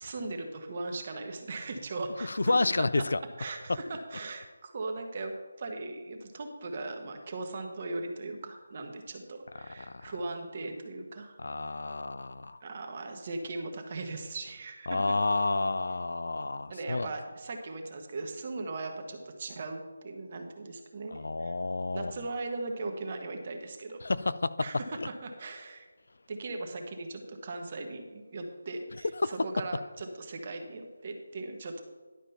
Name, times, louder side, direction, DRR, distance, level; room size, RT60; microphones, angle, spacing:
voice 1, 0.0-2.3 3.4-5.3 5.6-11.4 12.6-15.0 16.7-21.5 21.9-24.0 24.6-25.9 26.3-31.8, right 2 dB, 35° right, 4 dB, 1.3 m, -38 dB
voice 2, 2.2-3.2 9.6-10.1 11.4-12.6 14.9-17.1 21.1-22.1 24.0-24.7 25.0-25.1 29.1-29.4, left 2 dB, 70° left, 15 dB, 0.5 m, -30 dB
11.0 x 5.0 x 5.7 m, 1.4 s
figure-of-eight pair, 165°, 0 cm